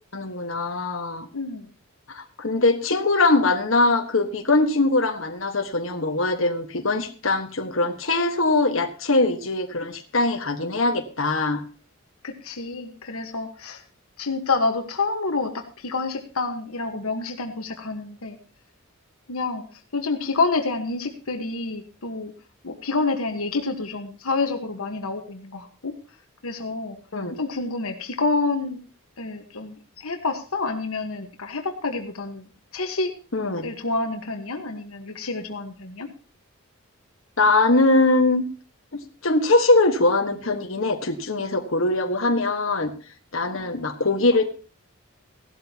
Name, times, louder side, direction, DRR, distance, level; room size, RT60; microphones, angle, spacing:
voice 1, 0.1-1.3 2.1-11.6 27.1-27.4 33.3-33.7 37.4-38.4 38.9-42.9 43.3-44.5, left 2 dB, 65° left, 4 dB, 1.5 m, -22 dB
voice 2, 1.3-1.7 12.2-13.8 14.2-18.4 19.3-19.6 19.9-22.3 22.6-26.0 26.4-27.0 27.4-28.8 29.2-32.5 32.7-33.1 33.6-36.1 43.5-43.8, left 3 dB, 80° left, 5 dB, 1.4 m, -28 dB
16.5 x 12.5 x 2.9 m, 0.37 s
head